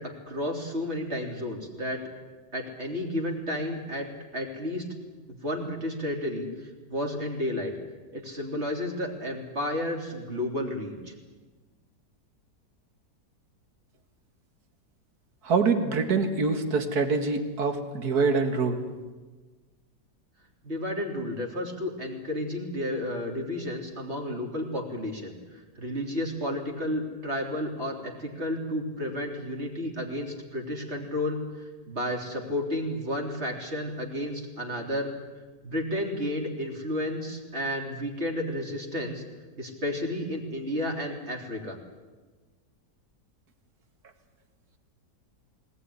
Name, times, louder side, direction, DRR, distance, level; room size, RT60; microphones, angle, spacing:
voice 1, 0.0-2.1 2.5-4.9 5.3-7.7 8.1-11.1 20.6-35.1 35.6-39.2 39.6-41.8, left 1 dB, 40° right, 1 dB, 3.6 m, -32 dB
voice 2, 15.4-18.8, right 4 dB, 60° right, 7 dB, 2.4 m, -25 dB
21.0 x 19.5 x 9.8 m, 1.3 s
omnidirectional pair, 1.9 m